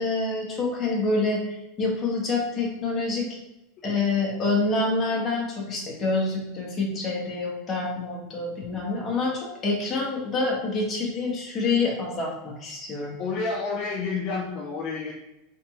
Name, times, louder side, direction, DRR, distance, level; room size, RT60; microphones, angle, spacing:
voice 1, 0.0-1.4 1.8-3.3 3.8-13.1, left 3 dB, 25° left, -2 dB, 1.3 m, -27 dB
voice 2, 13.2-15.1, left 4 dB, 45° left, 0 dB, 0.6 m, -29 dB
3.6 x 3.4 x 3.0 m, 0.96 s
supercardioid pair, 140°, 0 cm